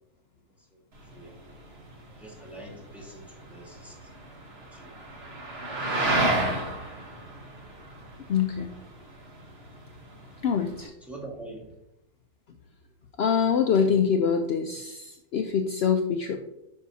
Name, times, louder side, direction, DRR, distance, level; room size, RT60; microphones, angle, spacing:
sound 1, 0.9-10.9, right 2 dB, 40° right, 1.5 m, -32 dB
voice 1, 2.2-4.1 4.7-4.9 5.7-6.0 11.0-11.7, right 2 dB, ahead, -3 dB, 1.6 m, -44 dB
voice 2, 8.3-8.7 10.4-10.9 13.2-16.4, left 7 dB, 70° left, 5 dB, 0.6 m, -24 dB
9.4 x 6.0 x 2.8 m, 0.86 s
omnidirectional pair, 1.7 m